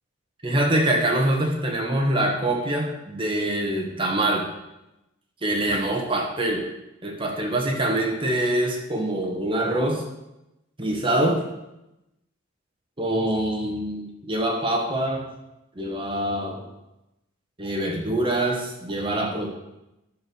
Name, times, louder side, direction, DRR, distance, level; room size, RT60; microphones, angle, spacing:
voice 1, 0.4-4.5 5.4-6.7 7.0-10.0 10.8-11.4 13.0-15.3 15.7-16.7 17.6-19.5, right 1 dB, 25° right, 1 dB, 1.6 m, -24 dB
10.5 x 6.7 x 6.2 m, 0.91 s
head